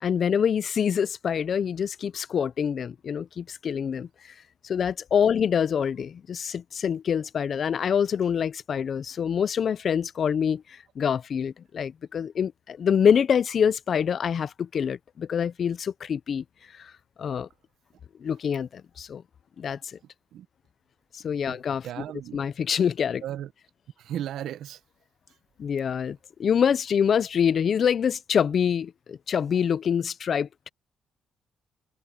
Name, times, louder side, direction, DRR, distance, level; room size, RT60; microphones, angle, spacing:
voice 1, 0.0-4.1 4.6-16.4 16.8-16.9 17.2-17.5 18.2-19.2 19.6-20.0 21.1-21.9 22.3-23.2 25.6-30.7, left 7 dB, 55° left, 0.6 m, -25 dB
voice 2, 21.5-22.4 23.2-23.5 24.0-24.8, right 11 dB, 75° right, 0.9 m, -35 dB
cardioid pair, 90°, 0 cm